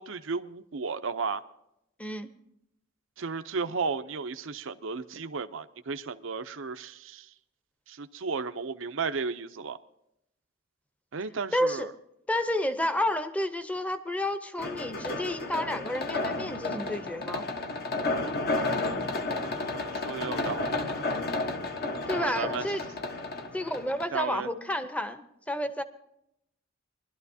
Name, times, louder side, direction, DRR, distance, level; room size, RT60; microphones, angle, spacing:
voice 1, 0.0-1.4 3.2-7.3 7.9-9.8 11.1-11.9 19.4-20.7 22.1-22.6 24.1-24.5, right 5 dB, 75° right, 0.6 m, -34 dB
voice 2, 2.0-2.3 11.5-11.9 12.3-17.4 22.1-22.8 23.5-25.8, left 1 dB, 5° left, 0.8 m, -30 dB
sound 1, 14.6-24.0, left 2 dB, 50° left, 1.1 m, -32 dB
22.5 x 12.0 x 2.7 m
head